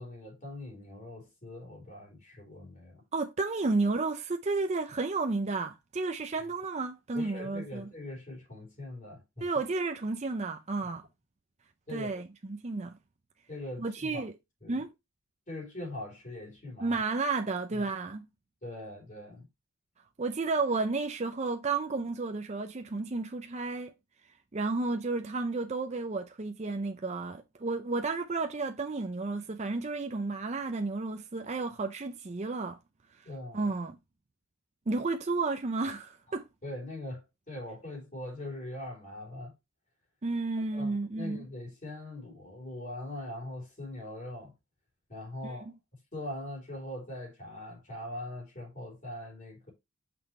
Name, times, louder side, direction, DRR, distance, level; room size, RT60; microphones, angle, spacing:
voice 1, 0.0-3.0 7.1-9.5 10.8-10.9 11.9-12.1 13.5-14.2 14.6-14.8 15.5-17.0 17.7-17.8 18.6-19.5 33.3-33.7 36.6-39.5 40.7-44.5 45.1-45.7 46.1-49.7, left 1 dB, 35° left, 3.4 m, -42 dB
voice 2, 3.1-7.9 9.4-11.1 11.9-13.0 13.8-14.3 14.7-14.9 16.8-18.3 20.2-23.9 24.5-32.8 33.2-33.3 33.5-34.0 34.9-36.5 40.2-41.5 45.4-45.7, right 3 dB, 30° right, 0.5 m, -32 dB
6.0 x 5.2 x 3.2 m
head